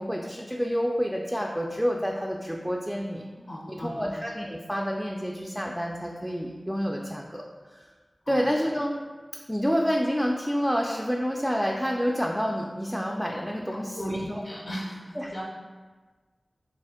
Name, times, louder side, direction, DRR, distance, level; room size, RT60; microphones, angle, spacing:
voice 1, 0.0-3.2 3.7-7.4 8.3-8.9 9.5-14.4 15.2-15.4, equal, 5° right, -1 dB, 0.3 m, -28 dB
voice 2, 3.3-4.1 8.3-8.4 13.9-15.4, equal, 70° left, -5 dB, 0.5 m, -36 dB
3.4 x 2.4 x 3.6 m, 1.4 s
wide cardioid pair, 45°, 0 cm